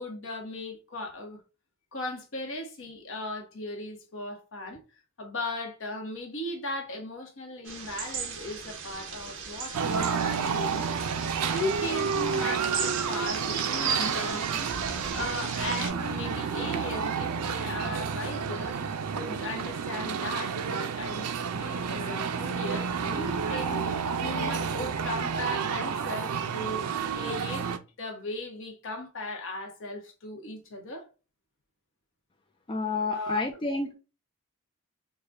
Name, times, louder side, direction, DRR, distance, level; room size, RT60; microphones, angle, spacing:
voice 1, 0.0-1.4 1.9-4.8 5.2-11.1 11.4-14.7 15.1-18.8 19.1-26.9 27.2-31.1 33.1-33.5, left 1 dB, 60° left, 1.0 m, -37 dB
sound 1, 7.7-15.9, right 6 dB, 60° right, 1.0 m, -35 dB
sound 2, 9.7-27.8, right 6 dB, 90° right, 0.5 m, -30 dB
voice 2, 32.7-33.9, left 3 dB, 20° left, 0.4 m, -29 dB
4.9 x 2.2 x 2.5 m
head